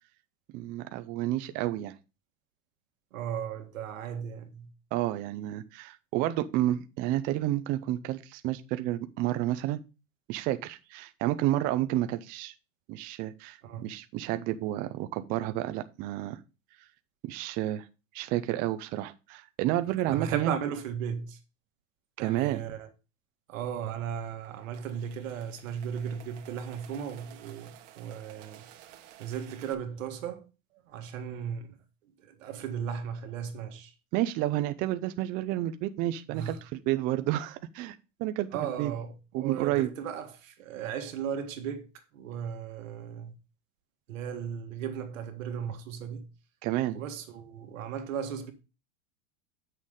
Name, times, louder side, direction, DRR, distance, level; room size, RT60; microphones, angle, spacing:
voice 1, 0.5-1.9 4.9-9.8 10.3-12.5 12.9-16.4 17.3-17.9 18.1-20.5 22.2-22.6 34.1-37.9 38.2-38.5 38.8-38.9 39.3-39.9 46.6-47.0, right 14 dB, 25° right, 0.3 m, -30 dB
voice 2, 3.1-4.7 13.6-13.9 20.1-21.4 22.2-22.9 23.5-28.8 29.2-30.5 30.9-31.8 32.2-33.9 36.3-36.6 38.5-43.3 44.1-46.3 46.9-48.5, right 8 dB, 90° right, 1.7 m, -36 dB
sound 1, 24.2-29.7, right 13 dB, 60° right, 1.3 m, -53 dB
8.1 x 6.4 x 3.6 m
supercardioid pair, 155°, 38 cm